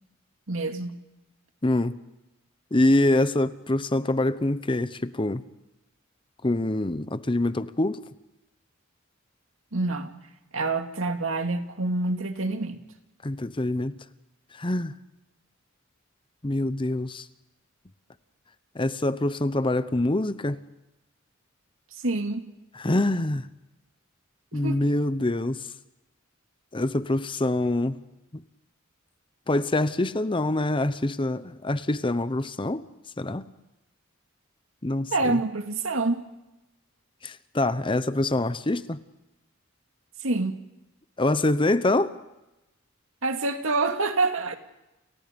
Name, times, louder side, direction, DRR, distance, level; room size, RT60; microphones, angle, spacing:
voice 1, 0.5-1.0 9.7-10.2 10.5-12.8 22.0-22.5 24.5-24.8 35.1-36.3 40.2-40.6 43.2-44.6, right 3 dB, 80° right, 2.3 m, -27 dB
voice 2, 1.6-2.0 2.7-5.4 6.4-8.0 13.2-13.9 14.5-14.9 16.4-17.3 18.7-20.6 22.7-23.5 24.5-25.7 26.7-28.0 28.3-28.4 29.5-32.9 33.2-33.5 34.8-35.4 37.2-39.0 41.2-42.2, left 1 dB, 25° left, 0.8 m, -25 dB
30.0 x 29.5 x 5.3 m
head